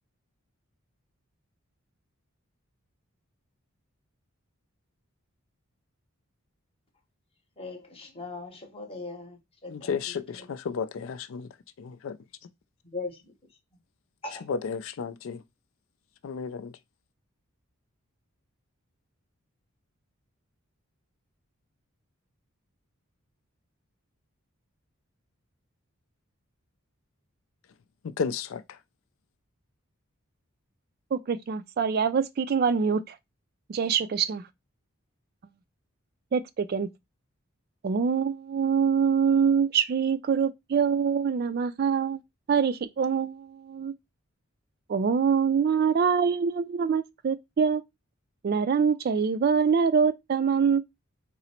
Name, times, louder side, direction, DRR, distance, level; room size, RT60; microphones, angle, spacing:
voice 1, 7.6-9.4 9.6-10.0 12.9-13.1 14.2-14.4, left 3 dB, 25° left, 0.8 m, -38 dB
voice 2, 9.7-11.5 11.8-12.2 14.4-15.4 16.2-16.7 28.2-28.6, left 6 dB, 65° left, 0.4 m, -32 dB
voice 3, 31.1-33.2 33.7-34.4 36.3-36.9 37.8-42.2 42.5-43.9 44.9-47.8 48.4-50.8, right 6 dB, 45° right, 0.3 m, -24 dB
3.8 x 2.0 x 4.2 m
head